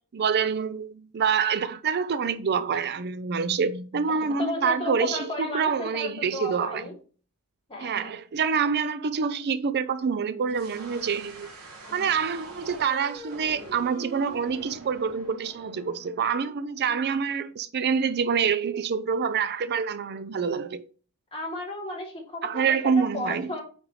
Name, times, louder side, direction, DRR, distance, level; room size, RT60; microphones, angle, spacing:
voice 1, 0.1-6.9 7.8-11.5 11.9-20.8 22.4-23.6, right 6 dB, 50° right, 0.5 m, -26 dB
voice 2, 4.4-6.9 7.7-8.1 11.9-12.1 21.3-23.6, left 2 dB, 25° left, 2.8 m, -34 dB
sound 1, 10.5-17.3, right 2 dB, 90° right, 2.8 m, -44 dB
8.8 x 5.2 x 3.2 m
head